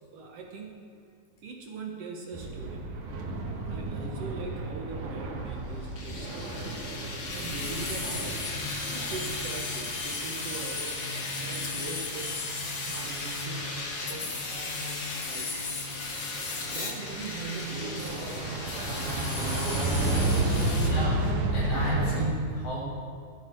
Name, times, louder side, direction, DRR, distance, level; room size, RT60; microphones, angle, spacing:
voice 1, 0.0-1.0 1.4-2.9 3.7-6.9 7.3-8.5 8.8-11.0 11.3-12.5 12.8-15.5 16.7-18.8, right 3 dB, 60° right, 1 dB, 2.1 m, -41 dB
sound 1, 2.3-14.6 15.1-15.3 15.7-22.3, right 2 dB, 75° right, 3.0 m, -33 dB
sound 2, 6.0-20.9, left 3 dB, 40° left, 1.5 m, -35 dB
voice 2, 20.8-22.9, equal, 75° left, -4 dB, 5.2 m, -31 dB
16.0 x 12.5 x 4.6 m, 2.1 s
omnidirectional pair, 3.5 m